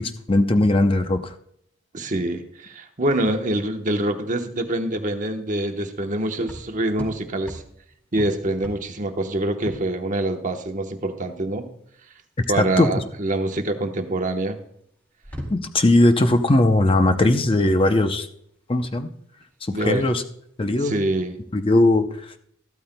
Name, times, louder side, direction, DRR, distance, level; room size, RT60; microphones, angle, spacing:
voice 1, 0.0-1.3 12.5-13.0 15.5-18.3 18.7-19.1 19.6-20.2 20.6-21.0 21.5-22.3, left 2 dB, 25° left, 7 dB, 0.6 m, -19 dB
voice 2, 1.9-7.6 8.1-11.7 12.5-14.6 19.7-20.1 20.8-21.3, right 1 dB, 40° right, 5 dB, 1.0 m, -25 dB
sound 1, 3.6-21.8, equal, 10° left, 2.1 m, -43 dB
14.0 x 13.0 x 2.2 m, 0.71 s
head